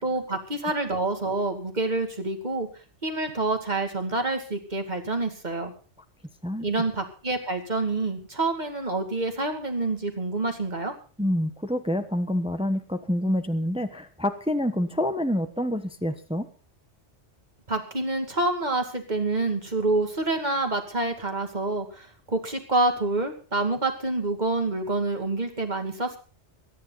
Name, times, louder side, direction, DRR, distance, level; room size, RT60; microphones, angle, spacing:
voice 1, 0.0-2.7 3.0-5.7 6.6-10.9 17.7-26.2, right 2 dB, 40° right, 5 dB, 2.5 m, -27 dB
voice 2, 11.2-16.5, left 1 dB, 5° right, 8 dB, 1.0 m, -27 dB
23.0 x 10.0 x 4.1 m, 0.37 s
omnidirectional pair, 1.2 m